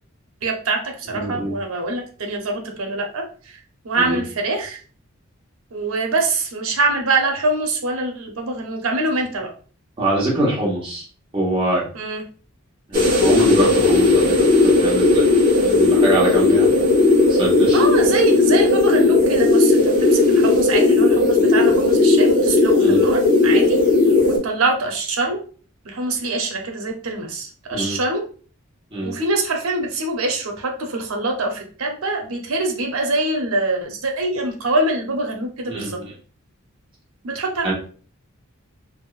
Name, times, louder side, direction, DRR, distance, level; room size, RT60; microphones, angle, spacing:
voice 1, 0.4-3.2 3.8-4.8 5.7-9.5 11.9-12.2 17.7-23.8 24.4-25.4 25.8-28.2 29.0-36.0 37.2-37.7, right 2 dB, 85° right, 3 dB, 0.7 m, -24 dB
voice 2, 1.1-1.6 4.0-4.2 10.0-11.0 11.3-11.9 12.9-15.3 15.6-16.8 17.3-17.8 22.8-23.0 27.7-28.0 28.9-29.2 35.7-36.1 37.6-37.7, right 1 dB, 25° right, -5 dB, 1.1 m, -24 dB
sound 1, 12.9-24.4, left 2 dB, 40° right, 1.2 m, -16 dB
3.5 x 2.1 x 2.4 m, 0.40 s
head